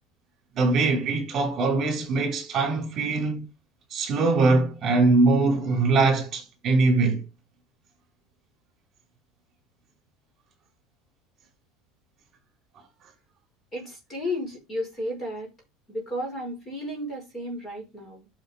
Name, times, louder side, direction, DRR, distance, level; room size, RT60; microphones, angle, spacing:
voice 1, 0.5-3.4 3.9-7.2, right 3 dB, 25° right, 5.0 m, -22 dB
voice 2, 13.7-15.5 15.9-18.3, left 1 dB, 15° left, 5.2 m, -33 dB
11.5 x 5.9 x 3.7 m
cardioid pair, 170°, 0 cm